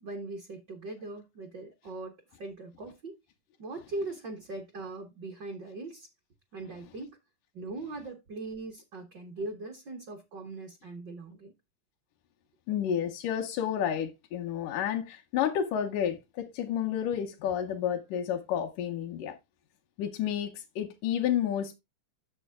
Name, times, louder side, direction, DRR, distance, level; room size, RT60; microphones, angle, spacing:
voice 1, 0.0-2.1 2.4-3.2 3.6-6.1 6.5-7.2 7.5-11.5, right 2 dB, 55° right, 1.3 m, -40 dB
voice 2, 12.7-19.3 20.0-21.8, left 9 dB, 90° left, 2.5 m, -30 dB
9.0 x 6.9 x 3.5 m
omnidirectional pair, 3.6 m